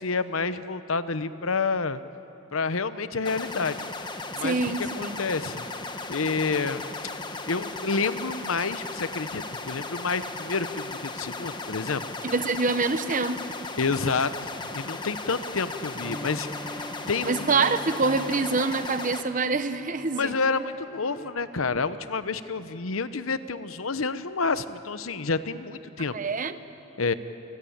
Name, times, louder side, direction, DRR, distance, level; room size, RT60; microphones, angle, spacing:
voice 1, 0.0-2.0 2.5-3.8 4.3-5.6 6.1-6.9 7.5-12.0 13.8-17.8 20.1-26.2 27.0-27.1, left 4 dB, 75° left, 13 dB, 0.9 m, -29 dB
sound 1, 3.2-19.2, left 3 dB, 20° left, 1.2 m, -36 dB
voice 2, 4.4-5.2 12.2-13.4 17.3-20.4 26.1-26.6, right 4 dB, 40° right, 11 dB, 0.9 m, -26 dB
Bowed string instrument, 16.0-22.0, equal, 5° right, 1.0 m, -44 dB
29.0 x 19.5 x 8.7 m, 3.0 s
head